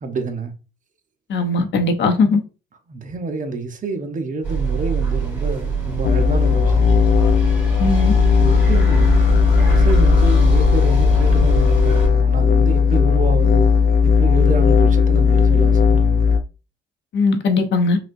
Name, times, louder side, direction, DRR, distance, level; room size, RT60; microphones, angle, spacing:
voice 1, 0.0-0.5 2.9-7.0 8.3-9.2 9.7-13.7 14.0-16.3, right 3 dB, 40° right, 0.9 m, -28 dB
voice 2, 1.3-2.4 7.8-8.1 17.1-18.0, left 3 dB, 65° left, 1.0 m, -18 dB
sound 1, 4.4-12.1, right 5 dB, 10° right, 2.2 m, -24 dB
sound 2, 6.0-16.4, left 6 dB, 50° left, 0.6 m, -15 dB
5.8 x 2.5 x 2.6 m
cardioid pair, 90°, 20 cm